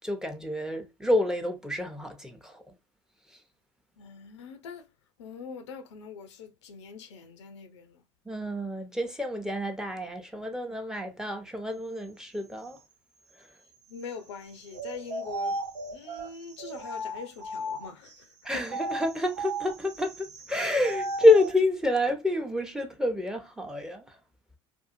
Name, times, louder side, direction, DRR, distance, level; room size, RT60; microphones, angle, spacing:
voice 1, 0.0-2.6 8.3-12.8 13.4-13.5 18.4-24.2, left 2 dB, 5° right, 0.7 m, -28 dB
voice 2, 4.0-4.9 5.2-8.0 13.9-15.6 15.9-18.6, left 5 dB, 80° left, 0.5 m, -43 dB
sound 1, 14.7-18.1 18.6-21.6, right 2 dB, 85° right, 0.6 m, -35 dB
2.6 x 2.4 x 2.4 m
hypercardioid pair, 65°, 15 cm